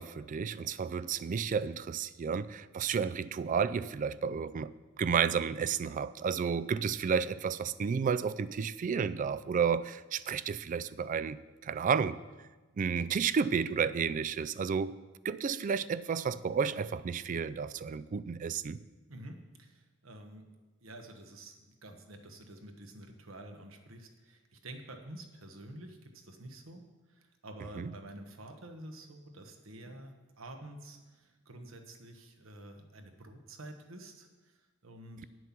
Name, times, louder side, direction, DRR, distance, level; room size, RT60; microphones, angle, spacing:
voice 1, 0.0-4.7 5.0-12.2 12.8-18.8 27.8-27.9, right 6 dB, 40° right, 0.3 m, -32 dB
voice 2, 19.1-26.8 27.1-35.3, right 1 dB, 70° right, 1.2 m, -49 dB
9.8 x 7.7 x 5.9 m
head